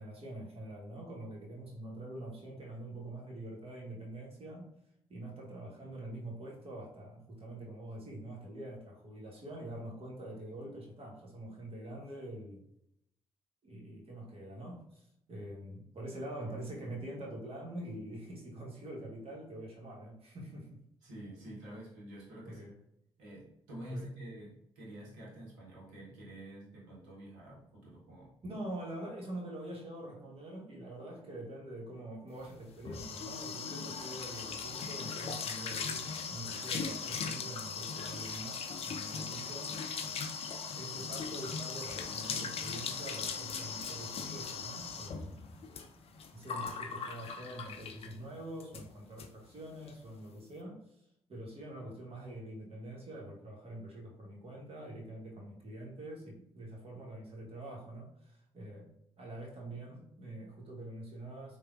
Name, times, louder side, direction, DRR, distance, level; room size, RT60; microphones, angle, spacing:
voice 1, 0.0-4.7 5.1-12.6 13.6-20.8 22.4-22.7 23.9-24.1 28.4-40.1 40.7-45.4 46.3-50.9 51.3-58.9 59.2-61.6, right 1 dB, 45° right, -2 dB, 1.0 m, -45 dB
voice 2, 21.0-22.7 23.2-28.4, right 1 dB, 85° right, -5 dB, 0.8 m, -48 dB
sound 1, 32.5-48.2 48.6-48.9 49.2-49.3 49.6-49.9, left 5 dB, 50° left, 0.4 m, -39 dB
3.2 x 2.1 x 2.3 m, 0.78 s
hypercardioid pair, 40°, 13 cm